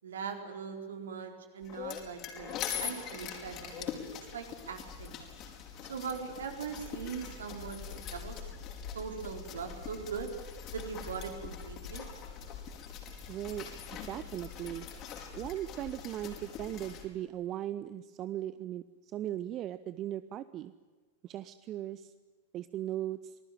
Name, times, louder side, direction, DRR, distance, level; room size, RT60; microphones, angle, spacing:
voice 1, 0.0-5.2 5.9-8.5 8.9-10.3 10.7-12.1, right 6 dB, 65° right, 5 dB, 4.3 m, -41 dB
sound 1, 1.6-17.0, left 7 dB, 35° left, 5.2 m, -43 dB
voice 2, 13.3-14.9 15.3-20.7 21.2-22.1 22.5-23.4, right 12 dB, 35° right, 14 dB, 0.8 m, -38 dB
27.5 x 20.0 x 9.4 m, 1.3 s
figure-of-eight pair, 90°, 0 cm